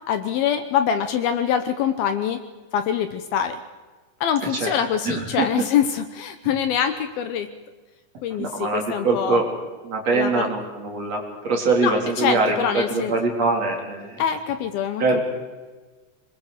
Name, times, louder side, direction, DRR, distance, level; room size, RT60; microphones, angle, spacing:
voice 1, 0.1-2.4 2.7-3.6 4.2-7.5 8.2-9.4 10.1-10.5 11.8-13.2 14.2-15.2, left 8 dB, 75° left, 9 dB, 2.6 m, -24 dB
voice 2, 4.4-4.7 5.1-5.5 8.4-9.5 9.8-14.2 15.0-15.2, right 3 dB, 40° right, 0 dB, 4.2 m, -23 dB
26.0 x 22.5 x 5.0 m, 1.3 s
omnidirectional pair, 4.9 m